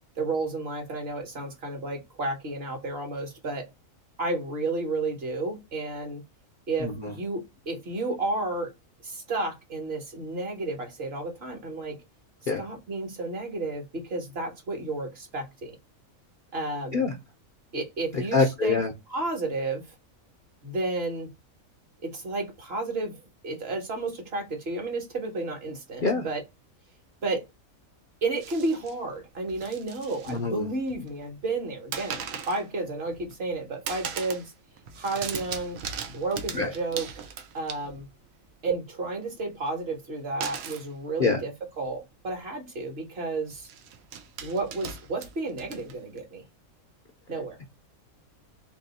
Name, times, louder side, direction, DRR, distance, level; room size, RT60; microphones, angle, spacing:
voice 1, 0.2-3.7 4.2-6.2 6.7-8.7 9.0-12.0 12.6-15.7 16.5-17.0 17.7-18.8 19.1-19.8 20.6-21.3 22.0-23.2 23.4-26.4 27.2-27.4 28.2-34.5 34.9-35.8 36.1-37.1 37.5-38.1 38.6-43.7 44.4-46.4 47.3-47.6, right 2 dB, 50° right, 1.2 m, -32 dB
voice 2, 6.8-7.1 12.5-12.6 16.9-17.1 18.1-18.9 26.0-26.2 30.3-30.7 36.6-36.7 41.2-41.4, left 4 dB, 55° left, 0.6 m, -25 dB
sound 1, 28.4-29.0 29.5-30.4 30.7-31.2 31.9-32.6 33.1-33.5 33.9-34.5 34.8-38.2 40.4-40.9 41.8-41.9 42.3-42.4 43.5-46.2, right 7 dB, 80° right, 1.1 m, -38 dB
3.0 x 2.8 x 4.0 m
omnidirectional pair, 1.4 m